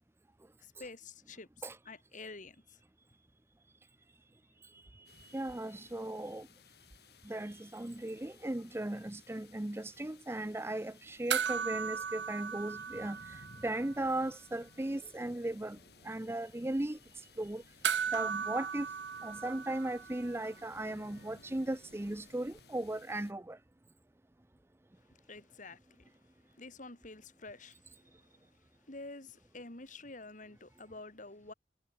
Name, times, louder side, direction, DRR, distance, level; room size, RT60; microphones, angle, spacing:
voice 1, 0.6-2.8 25.1-26.1 26.6-27.9 28.3-28.6 28.9-31.5, left 3 dB, 45° left, 3.0 m, -49 dB
voice 2, 4.7-6.5 7.2-17.0 17.4-17.6 18.1-18.9 19.2-23.6, right 1 dB, 15° right, 0.5 m, -37 dB
sound 1, 5.1-23.3, left 4 dB, 65° left, 6.5 m, -60 dB
sound 2, 11.3-14.0 14.2-14.3 17.8-20.4 22.6-22.7, right 7 dB, 85° right, 0.7 m, -36 dB
head